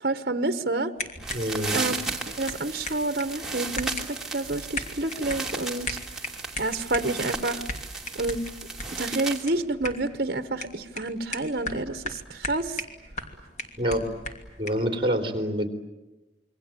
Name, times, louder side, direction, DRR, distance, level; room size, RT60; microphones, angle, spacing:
voice 1, 0.0-0.9 1.7-2.0 2.4-6.0 6.6-7.6 8.1-8.4 9.0-12.8, right 2 dB, 55° right, 11 dB, 1.2 m, -29 dB
sound 1, 1.0-14.9, left 1 dB, 45° left, 2.9 m, -39 dB
sound 2, 1.1-9.4, right 3 dB, 5° right, 2.9 m, -35 dB
voice 2, 1.3-1.8 13.8-14.0 14.6-15.7, equal, 30° right, 6 dB, 3.6 m, -26 dB
27.5 x 23.5 x 9.0 m, 1.0 s
head